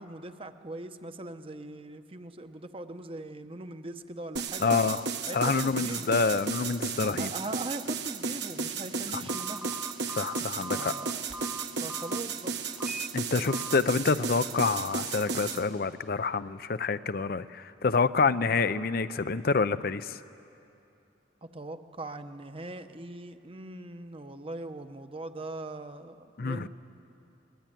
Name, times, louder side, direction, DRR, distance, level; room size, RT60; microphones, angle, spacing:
voice 1, 0.0-4.7 5.3-6.2 7.2-9.7 10.7-11.3 11.8-12.5 21.4-26.7, right 2 dB, 30° right, 8 dB, 0.9 m, -41 dB
sound 1, 4.4-15.6, right 5 dB, 65° right, 1.3 m, -34 dB
voice 2, 4.6-5.1 5.3-7.3 9.1-9.2 10.2-10.9 13.1-20.2 26.4-26.7, left 4 dB, 55° left, 14 dB, 0.6 m, -27 dB
Telephone, 9.3-12.2 12.8-13.1 13.5-13.8, right 2 dB, 5° right, 0.6 m, -40 dB
23.0 x 20.5 x 9.1 m, 2.7 s
head